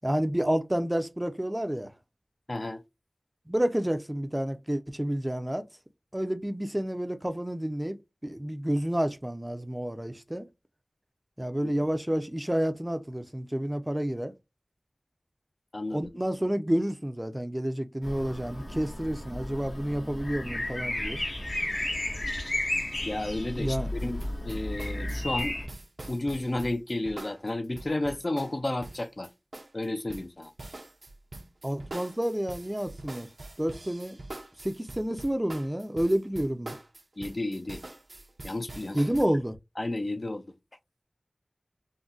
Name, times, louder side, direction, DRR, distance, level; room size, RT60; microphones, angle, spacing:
voice 1, 0.0-1.9 3.5-5.6 6.1-8.0 8.2-10.5 11.4-14.3 15.9-21.2 23.6-23.9 31.6-33.3 33.6-34.2 34.6-36.8 38.9-39.6, right 1 dB, 15° right, 0.4 m, -29 dB
voice 2, 2.5-2.8 11.6-11.7 15.7-16.1 23.0-25.6 26.1-29.3 29.7-30.5 37.2-37.8 38.4-39.0 39.8-40.5, left 2 dB, 50° left, 0.4 m, -32 dB
sound 1, 18.0-25.7, left 1 dB, 80° left, 1.4 m, -33 dB
sound 2, 24.0-39.3, right 2 dB, 65° right, 0.6 m, -44 dB
3.8 x 2.1 x 2.4 m
wide cardioid pair, 55°, 0 cm